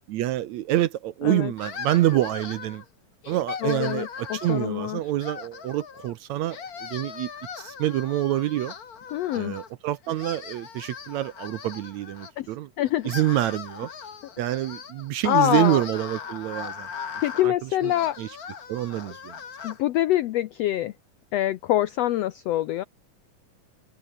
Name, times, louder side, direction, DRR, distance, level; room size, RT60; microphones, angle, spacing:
voice 1, 0.1-2.8 3.3-7.3 7.6-8.7 9.3-12.7 13.0-13.9 14.4-16.9 17.4-17.5 17.8-18.3 18.7-19.4, right 14 dB, 70° right, 1.8 m, -27 dB
sound 1, 1.6-2.8 3.2-4.7 5.2-6.1 6.4-9.7 10.0-12.3 12.8-19.8, left 6 dB, 40° left, 1.3 m, -39 dB
voice 2, 3.6-5.0 9.1-9.6 12.4-12.5 12.8-13.1 15.2-15.8 17.2-18.2 19.6-20.9 21.3-22.8, left 13 dB, 90° left, 1.4 m, -25 dB
omnidirectional pair, 3.8 m